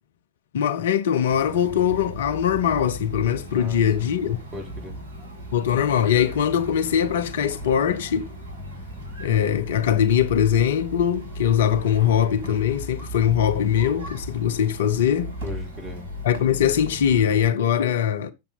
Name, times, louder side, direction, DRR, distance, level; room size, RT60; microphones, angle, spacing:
voice 1, 0.5-4.4 5.5-8.3 9.2-15.4 16.2-18.3, left 9 dB, 60° left, 0.7 m, -21 dB
sound 1, 1.3-17.5, equal, 55° right, 6.1 m, -37 dB
voice 2, 3.5-5.0 15.4-16.1, left 1 dB, 25° right, 3.8 m, -38 dB
10.5 x 7.1 x 3.9 m
figure-of-eight pair, 90°, 0 cm